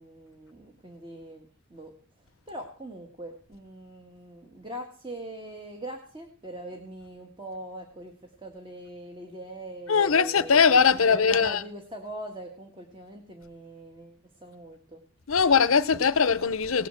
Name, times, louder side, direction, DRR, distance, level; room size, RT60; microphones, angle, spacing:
voice 1, 0.0-10.5 11.0-15.0, right 1 dB, 25° right, 1.7 m, -42 dB
voice 2, 9.9-11.6 15.3-16.9, left 6 dB, 85° left, 0.9 m, -21 dB
18.0 x 6.7 x 7.7 m
head